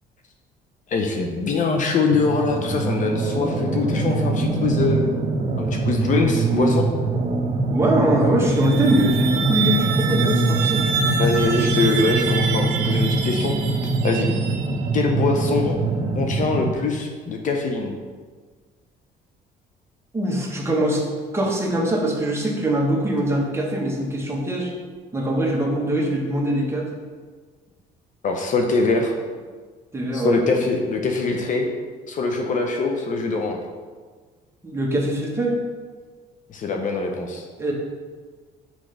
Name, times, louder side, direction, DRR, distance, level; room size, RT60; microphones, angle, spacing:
voice 1, 0.9-5.1 5.6-6.9 11.0-13.6 14.0-14.3 14.9-15.8 16.1-17.9 28.2-29.1 30.1-31.7 32.1-33.6 36.5-37.4, left 4 dB, 50° left, 3 dB, 0.7 m, -23 dB
sound 1, 2.1-16.7, right 3 dB, 45° right, 0.9 m, -23 dB
voice 2, 7.7-10.8 20.1-21.0 21.3-24.7 25.1-26.9 29.9-30.6 34.6-35.6 37.6-37.7, right 1 dB, 15° right, -2 dB, 1.2 m, -22 dB
sound 2, 8.4-15.1, right 8 dB, 90° right, 0.6 m, -27 dB
6.3 x 4.9 x 3.3 m, 1.5 s
cardioid pair, 110°, 17 cm